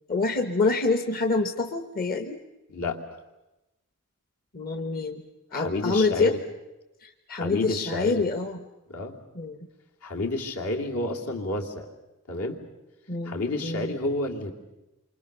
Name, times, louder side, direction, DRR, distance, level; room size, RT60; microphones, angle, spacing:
voice 1, 0.1-2.4 4.5-5.2 5.5-6.3 7.0-8.6 9.3-9.7 13.1-13.9, left 3 dB, 40° left, 7 dB, 1.2 m, -26 dB
voice 2, 5.5-6.4 7.3-8.2 8.9-9.2 10.0-11.9 12.3-12.6 13.2-14.5, left 2 dB, 70° left, 1 dB, 3.0 m, -30 dB
28.5 x 25.0 x 6.8 m, 0.98 s
head